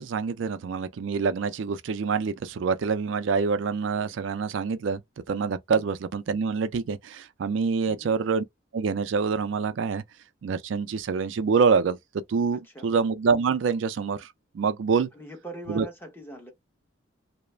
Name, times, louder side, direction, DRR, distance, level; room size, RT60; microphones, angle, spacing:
voice 1, 0.0-5.0 5.3-8.4 8.7-10.0 10.4-12.0 12.3-14.3 14.5-15.1 15.7-15.9, right 5 dB, 70° right, 0.4 m, -26 dB
voice 2, 12.5-12.9 15.1-16.5, right 2 dB, 10° left, 0.9 m, -42 dB
2.3 x 2.0 x 3.1 m
head